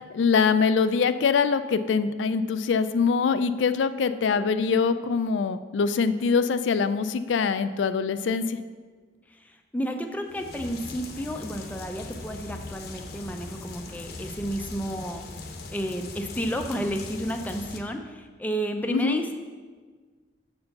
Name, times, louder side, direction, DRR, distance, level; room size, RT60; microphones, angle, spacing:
voice 1, 0.0-8.6 18.9-19.2, left 5 dB, 85° left, 11 dB, 0.4 m, -24 dB
voice 2, 9.7-15.2 15.7-19.3, equal, 10° left, 4 dB, 0.5 m, -31 dB
sound 1, 10.3-17.8, left 3 dB, 60° left, 0.8 m, -40 dB
6.8 x 4.5 x 6.6 m, 1.5 s
head